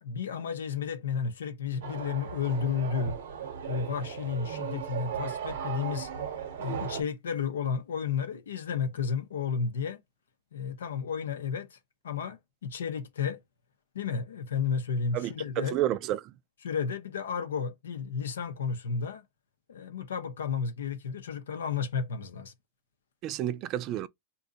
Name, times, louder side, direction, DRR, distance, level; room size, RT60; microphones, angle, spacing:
voice 1, 0.0-3.2 3.7-6.1 6.6-10.0 10.5-11.8 12.0-13.4 13.9-15.8 16.6-19.2 19.7-22.5, left 6 dB, 90° left, 0.6 m, -32 dB
sound 1, 1.8-7.0, right 7 dB, 80° right, 0.8 m, -37 dB
voice 2, 15.1-16.3 23.2-24.1, right 13 dB, 45° right, 0.4 m, -30 dB
2.6 x 2.2 x 3.9 m
hypercardioid pair, 115°, 0 cm